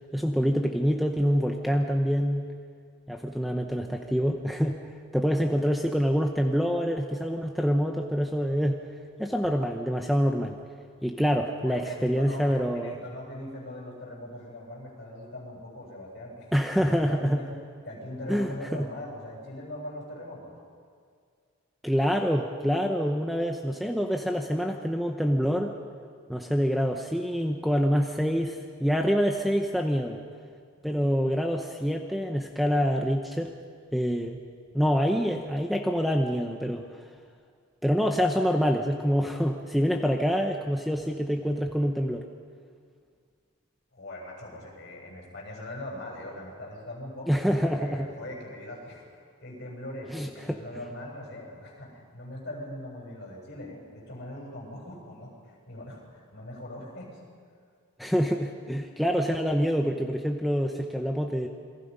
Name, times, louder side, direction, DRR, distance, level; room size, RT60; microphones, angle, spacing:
voice 1, 0.1-2.4 3.1-4.8 5.1-8.8 9.2-10.6 11.0-13.0 16.5-17.4 18.3-18.9 21.8-25.7 26.3-30.2 30.8-33.5 33.9-34.4 34.7-36.8 37.8-42.2 47.3-48.1 50.1-50.6 58.0-61.5, equal, ahead, 3 dB, 0.8 m, -26 dB
voice 2, 11.6-16.5 16.9-17.5 17.8-20.6 43.9-49.0 49.4-57.2, left 1 dB, 50° left, -2 dB, 7.9 m, -41 dB
28.0 x 23.0 x 5.5 m, 2.1 s
head